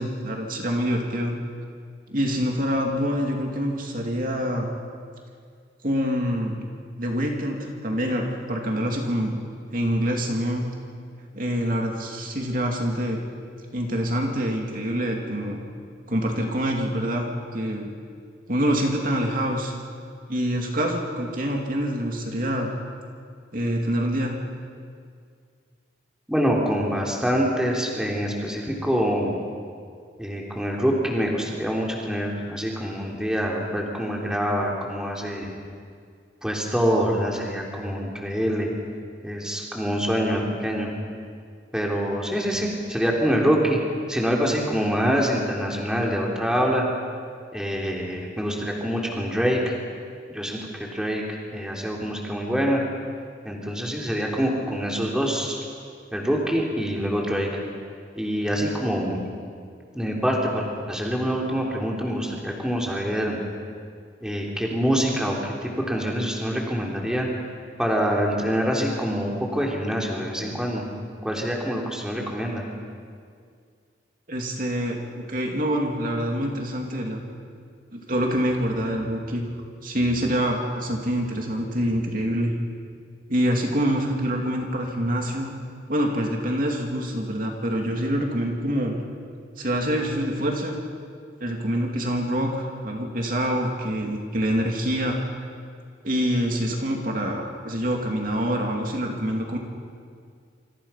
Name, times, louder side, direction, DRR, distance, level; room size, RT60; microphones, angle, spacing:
voice 1, 0.0-1.4 2.1-4.7 5.8-6.6 7.0-9.4 9.7-10.6 11.3-13.2 13.7-15.6 16.1-17.9 18.5-19.7 20.3-22.7 23.5-24.4 74.3-77.3 77.9-79.4 79.8-82.5 83.3-85.5 85.9-89.0 89.6-90.8 91.4-95.2 96.0-99.6, equal, 45° right, 1 dB, 2.8 m, -26 dB
voice 2, 26.3-29.3 30.2-35.5 36.4-38.7 39.2-40.9 41.7-43.8 44.1-46.9 47.5-49.7 50.3-51.2 51.5-52.8 53.4-55.6 56.1-57.5 58.2-59.2 59.9-63.4 64.2-67.3 67.8-70.8 71.2-72.6, equal, 5° right, -2 dB, 3.5 m, -25 dB
27.5 x 26.5 x 5.9 m, 2.2 s
head